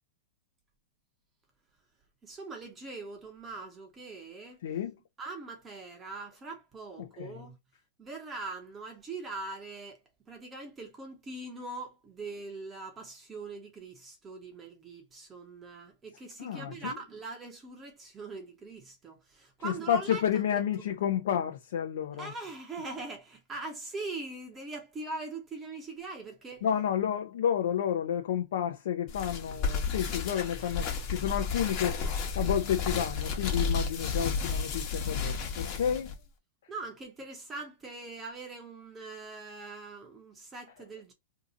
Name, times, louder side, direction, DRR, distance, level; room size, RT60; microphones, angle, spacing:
voice 1, 2.2-4.6 5.2-7.6 8.0-10.0 10.3-20.4 22.2-26.6 31.6-32.1 36.7-41.1, right 3 dB, 15° right, 0.7 m, -42 dB
voice 2, 4.6-4.9 7.0-7.4 16.4-17.0 19.6-22.3 26.6-32.0 32.3-36.1, left 9 dB, 65° left, 0.6 m, -30 dB
sound 1, 29.1-36.1, left 5 dB, 35° left, 1.0 m, -32 dB
2.8 x 2.5 x 3.8 m
supercardioid pair, 160°, 0 cm